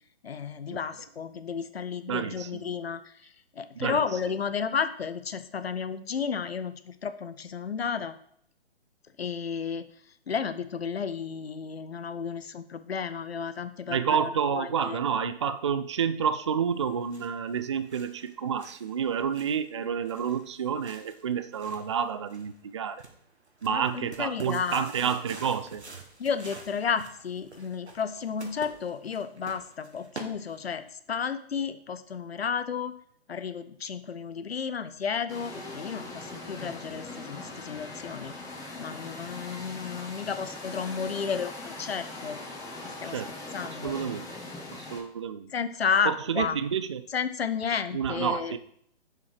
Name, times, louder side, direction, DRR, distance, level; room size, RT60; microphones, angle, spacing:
voice 1, 0.2-8.1 9.2-9.8 10.3-15.0 23.7-24.9 26.2-32.9 33.3-38.4 38.8-42.4 42.8-43.2 43.5-44.0 45.5-46.6 47.1-48.6, left 6 dB, 65° left, 12 dB, 0.9 m, -32 dB
voice 2, 2.1-2.6 3.8-4.0 13.9-23.0 23.6-25.8 43.1-43.3 43.8-44.3 44.7-45.5 46.0-47.0 47.9-48.6, right 7 dB, 30° right, 13 dB, 0.4 m, -29 dB
sound 1, 16.7-30.9, right 3 dB, 85° right, 1.9 m, -48 dB
sound 2, 35.3-45.0, left 2 dB, 10° left, 2.0 m, -41 dB
7.7 x 7.3 x 4.9 m, 0.65 s
figure-of-eight pair, 135°, 33 cm